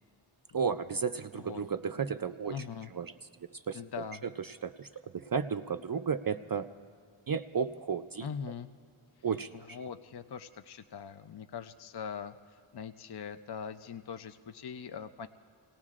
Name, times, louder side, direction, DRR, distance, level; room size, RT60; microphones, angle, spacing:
voice 1, 0.5-2.6 2.9-3.1 3.5-3.8 4.4-6.7 7.3-8.3 9.2-9.8, right 6 dB, 45° right, 10 dB, 0.5 m, -33 dB
voice 2, 2.5-2.9 3.7-4.3 8.2-8.7 9.5-15.3, left 7 dB, 50° left, 9 dB, 0.6 m, -42 dB
28.0 x 18.5 x 2.4 m, 2.3 s
wide cardioid pair, 40°, 50 cm